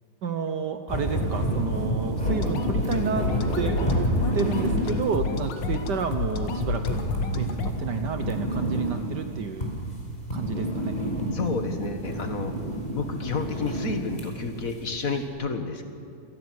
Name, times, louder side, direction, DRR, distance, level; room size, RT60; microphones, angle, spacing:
voice 1, 0.2-3.3 3.5-7.1 7.3-9.7 10.3-11.0, right 6 dB, 60° right, 7 dB, 1.4 m, -30 dB
sound 1, 0.9-15.2, right 1 dB, 20° left, 5.2 m, -30 dB
sound 2, 2.2-7.7, left 4 dB, 60° left, 1.9 m, -29 dB
voice 2, 11.3-12.5 12.9-15.8, left 4 dB, 45° left, 6 dB, 1.8 m, -30 dB
27.0 x 19.0 x 6.3 m, 2.5 s
omnidirectional pair, 2.3 m